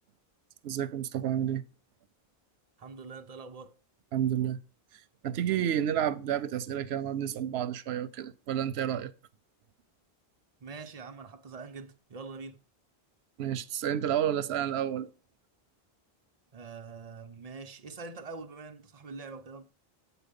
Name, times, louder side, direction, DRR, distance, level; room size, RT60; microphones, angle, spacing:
voice 1, 0.6-1.6 4.1-4.6 5.2-9.1 13.4-15.1, right 10 dB, 90° right, 0.8 m, -30 dB
voice 2, 2.8-3.8 10.6-12.6 16.5-19.7, right 4 dB, 45° right, 0.7 m, -44 dB
8.1 x 4.2 x 5.3 m
omnidirectional pair, 1.0 m